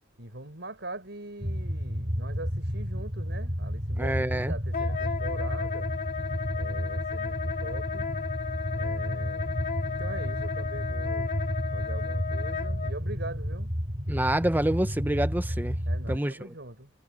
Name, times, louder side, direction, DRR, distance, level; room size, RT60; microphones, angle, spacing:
voice 1, 0.2-5.9 6.5-8.1 8.7-9.6 9.9-11.3 11.7-13.7 15.9-16.9, right 2 dB, 60° right, 7.1 m, -42 dB
sound 1, 1.4-16.2, equal, 35° right, 3.1 m, -31 dB
voice 2, 4.0-4.5 14.1-15.8 16.1-16.5, right 1 dB, 10° right, 0.8 m, -27 dB
Wind instrument woodwind instrument, 4.7-12.9, left 6 dB, 45° left, 2.9 m, -34 dB
head